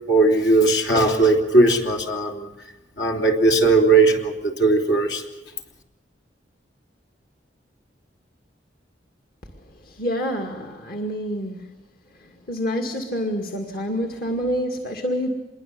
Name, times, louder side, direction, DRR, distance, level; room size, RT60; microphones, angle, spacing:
voice 1, 0.1-2.5 3.0-5.2, right 2 dB, 75° left, 3 dB, 3.3 m, -18 dB
voice 2, 9.8-11.7 12.2-15.3, equal, 55° left, 3 dB, 2.2 m, -27 dB
27.0 x 22.0 x 7.0 m, 1.0 s
head